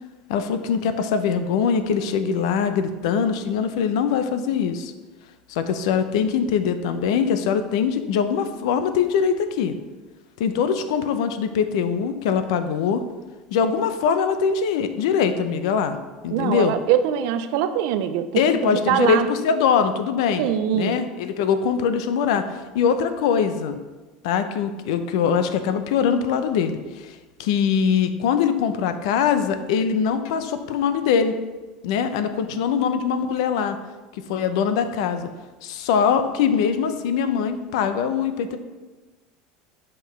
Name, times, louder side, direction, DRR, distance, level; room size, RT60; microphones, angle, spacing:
voice 1, 0.3-4.9 5.5-9.8 10.4-13.0 13.5-16.0 16.2-16.7 18.3-22.4 22.7-23.8 24.2-27.1 27.4-31.3 31.8-33.8 34.1-35.3 35.6-38.6, left 7 dB, 80° left, 10 dB, 0.5 m, -22 dB
voice 2, 16.3-18.3 18.6-19.3 20.4-21.0, right 10 dB, 75° right, 10 dB, 0.4 m, -22 dB
5.8 x 5.3 x 3.1 m, 1.2 s
supercardioid pair, 120°, 3 cm